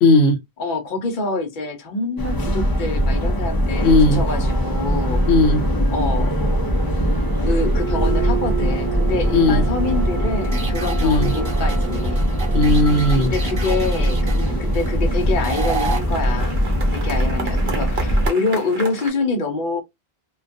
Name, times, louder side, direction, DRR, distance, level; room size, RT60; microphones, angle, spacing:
voice 1, 0.0-0.4 3.8-4.2 5.3-5.6 9.3-9.6 11.0-11.3 12.5-13.3, left 2 dB, 85° left, 0.9 m, -16 dB
voice 2, 0.6-5.2 5.9-6.4 7.4-12.3 13.2-16.6 16.9-19.8, left 3 dB, 55° left, 0.8 m, -26 dB
sound 1, 2.2-18.3, equal, 35° left, 0.4 m, -21 dB
sound 2, 3.8-19.1, right 7 dB, 80° right, 1.0 m, -33 dB
sound 3, 10.4-16.0, right 5 dB, 40° right, 0.4 m, -32 dB
2.3 x 2.2 x 2.5 m
omnidirectional pair, 1.0 m